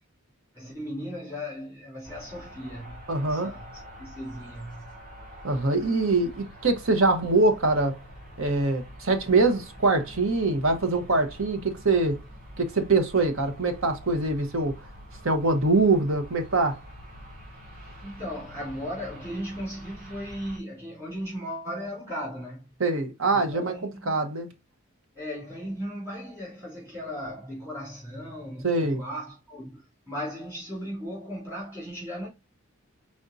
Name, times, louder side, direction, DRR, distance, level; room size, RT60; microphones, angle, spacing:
voice 1, 0.5-4.9 18.0-22.7 23.3-24.2 25.1-32.3, equal, 10° right, 2.6 m, -37 dB
sound 1, 2.0-20.6, equal, 45° right, 2.2 m, -46 dB
voice 2, 3.1-3.5 5.4-8.0 8.4-12.2 12.6-14.8 15.2-16.8 22.8-24.5 28.6-29.0, right 3 dB, 70° right, 0.9 m, -24 dB
5.1 x 3.5 x 2.6 m
head